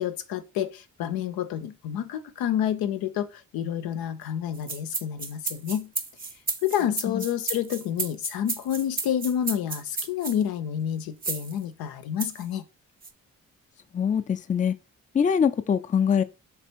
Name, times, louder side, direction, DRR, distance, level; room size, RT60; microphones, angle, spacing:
voice 1, 0.0-5.9 6.6-12.6, left 10 dB, 85° left, 0.5 m, -29 dB
sound 1, 4.5-10.4 11.2-11.5 12.2-12.4 13.0-13.1, right 4 dB, 25° right, 0.6 m, -32 dB
voice 2, 13.9-14.7 15.1-16.2, left 7 dB, 25° left, 0.4 m, -23 dB
3.4 x 3.4 x 4.4 m
supercardioid pair, 55°, 35 cm